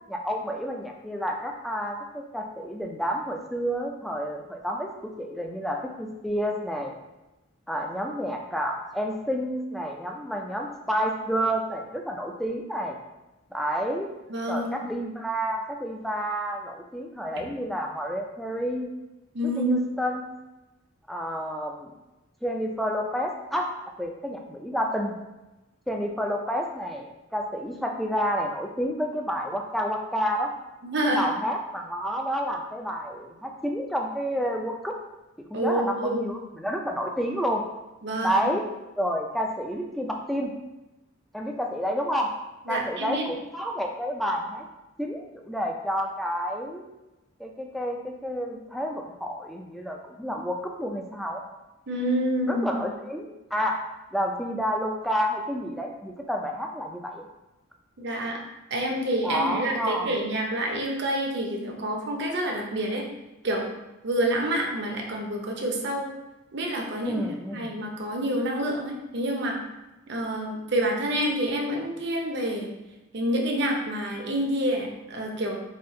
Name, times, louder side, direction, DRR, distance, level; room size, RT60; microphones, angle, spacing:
voice 1, 0.1-4.9 5.2-7.0 7.7-13.0 13.5-14.1 14.5-18.9 19.4-20.3 21.1-21.9 22.4-23.7 24.0-25.1 25.9-30.5 31.0-35.0 35.5-37.6 38.2-38.7 39.0-40.5 41.3-42.3 42.7-44.7 45.0-46.8 47.4-51.4 52.5-53.8 54.1-57.3 59.2-60.2 67.0-67.8, equal, ahead, 1 dB, 0.3 m, -29 dB
voice 2, 14.3-14.7 19.3-19.8 30.8-31.3 35.5-36.3 38.0-38.4 42.7-43.2 51.9-52.8 58.0-58.4 58.7-63.0 63.4-63.7 64.0-66.1 66.5-67.2 67.5-69.6 70.1-72.7 73.1-75.5, right 1 dB, 55° right, 1 dB, 0.7 m, -27 dB
4.3 x 2.4 x 3.7 m, 1.0 s
head